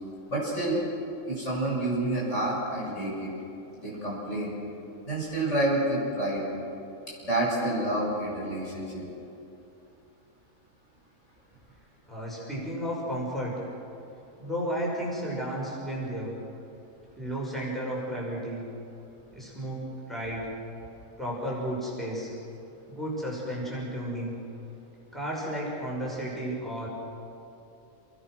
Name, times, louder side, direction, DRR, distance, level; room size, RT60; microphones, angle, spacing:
voice 1, 0.3-0.8 1.3-3.3 3.7-4.5 5.0-6.4 7.2-9.0, right 1 dB, 55° left, -6 dB, 8.0 m, -28 dB
voice 2, 12.1-13.6 14.4-16.3 17.2-18.7 19.3-20.5 21.2-22.3 22.9-24.4 25.1-26.9, equal, ahead, -5 dB, 6.2 m, -33 dB
28.5 x 21.0 x 6.4 m, 2.8 s
omnidirectional pair, 1.5 m